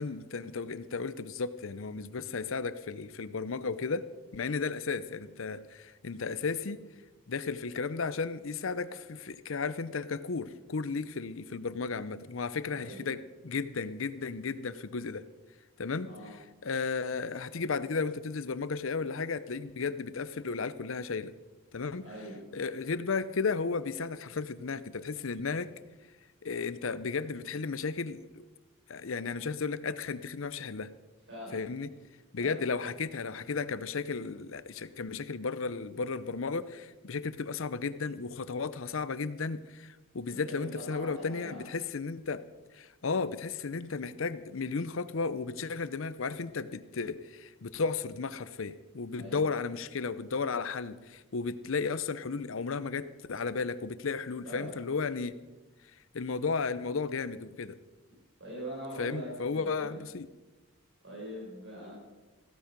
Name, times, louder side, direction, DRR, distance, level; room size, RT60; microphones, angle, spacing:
voice 1, 0.0-4.1 4.3-6.8 7.3-15.2 15.8-16.1 16.6-21.3 21.7-22.0 22.5-25.7 26.4-28.2 28.9-30.9 31.5-31.9 32.3-42.4 42.7-55.4 56.1-57.8 59.0-60.3, left 4 dB, 70° left, 15 dB, 0.7 m, -34 dB
voice 2, 12.6-13.1 16.0-16.3 22.0-22.4 31.3-31.6 32.4-32.6 40.3-41.6 49.1-49.4 54.4-54.7 58.4-60.0 61.0-61.9, equal, 60° right, -4 dB, 5.8 m, -43 dB
15.5 x 13.0 x 5.2 m, 1.2 s
head